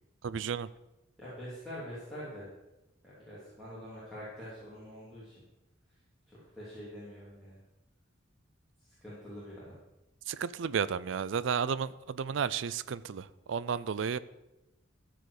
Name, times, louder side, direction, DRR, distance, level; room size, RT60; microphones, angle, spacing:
voice 1, 0.2-0.7 10.3-14.2, right 6 dB, 70° right, 17 dB, 0.4 m, -32 dB
voice 2, 1.2-2.5 3.0-5.3 6.3-7.6 8.8-9.8, equal, ahead, -11 dB, 3.3 m, -45 dB
14.0 x 5.1 x 6.6 m, 0.98 s
head